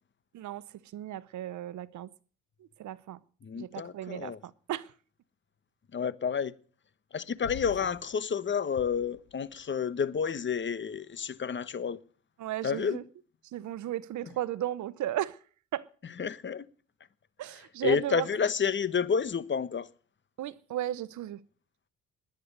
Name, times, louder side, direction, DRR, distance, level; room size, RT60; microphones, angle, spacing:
voice 1, 0.9-2.1 2.8-3.2 3.6-4.3 4.7-4.9 12.4-13.0 13.5-15.4 15.7-15.9 17.4-18.3 20.4-21.4, right 12 dB, 70° right, 0.9 m, -34 dB
voice 2, 3.4-4.4 5.9-6.5 7.1-12.0 12.6-13.0 16.2-16.6 17.8-19.9, left 6 dB, 40° left, 1.1 m, -30 dB
sound 1, 7.4-8.2 8.7-9.6, left 13 dB, 85° left, 1.1 m, -46 dB
20.5 x 9.5 x 6.6 m
cardioid pair, 90°, 30 cm